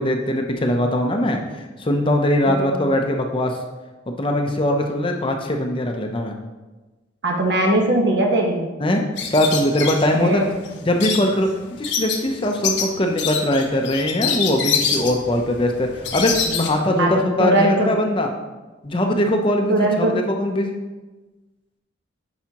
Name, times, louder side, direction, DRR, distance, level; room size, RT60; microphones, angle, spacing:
voice 1, 0.0-3.6 4.1-6.3 8.8-10.4 10.8-18.3 18.8-20.8, left 1 dB, 25° left, 3 dB, 0.6 m, -21 dB
voice 2, 7.2-8.7 10.2-10.5 17.0-17.9 19.7-20.2, right 1 dB, 65° right, 1 dB, 1.2 m, -20 dB
sound 1, 9.2-16.7, left 6 dB, 65° left, 0.8 m, -26 dB
10.5 x 4.8 x 2.9 m, 1.2 s
head